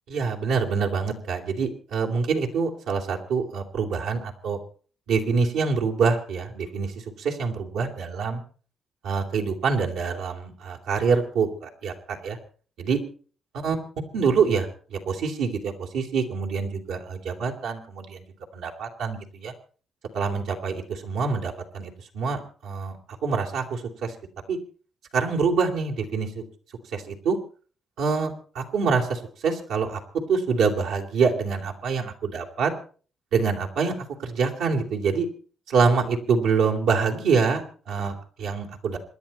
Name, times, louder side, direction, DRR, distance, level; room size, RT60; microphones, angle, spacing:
voice 1, 0.1-4.6 5.1-6.9 7.2-8.4 9.0-12.4 12.8-13.0 13.6-13.8 14.1-18.2 18.5-19.5 20.1-23.0 23.2-24.1 24.5-24.6 25.1-26.4 26.9-27.4 28.0-30.0 30.3-32.7 33.3-35.3 35.7-39.0, right 5 dB, 85° right, 1 dB, 3.1 m, -25 dB
26.5 x 11.0 x 4.3 m, 0.41 s
cardioid pair, 75°, 0 cm